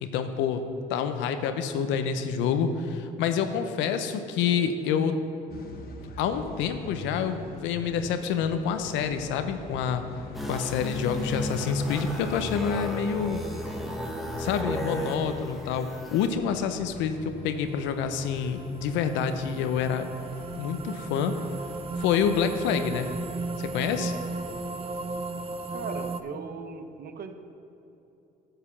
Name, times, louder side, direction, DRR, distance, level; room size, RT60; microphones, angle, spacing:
voice 1, 0.0-5.2 6.2-10.1 10.5-13.4 14.4-20.1 20.5-21.4 22.0-23.1 23.6-24.1, left 7 dB, 85° left, 9 dB, 0.6 m, -27 dB
sound 1, 5.5-25.0, left 3 dB, 55° left, 1.0 m, -44 dB
sound 2, 10.3-16.3, equal, ahead, 1.2 m, -34 dB
sound 3, 17.7-26.2, right 3 dB, 30° right, 0.5 m, -36 dB
voice 2, 25.7-27.3, right 5 dB, 55° right, 7 dB, 0.9 m, -38 dB
8.8 x 5.0 x 7.1 m, 2.9 s
supercardioid pair, 80°, 19 cm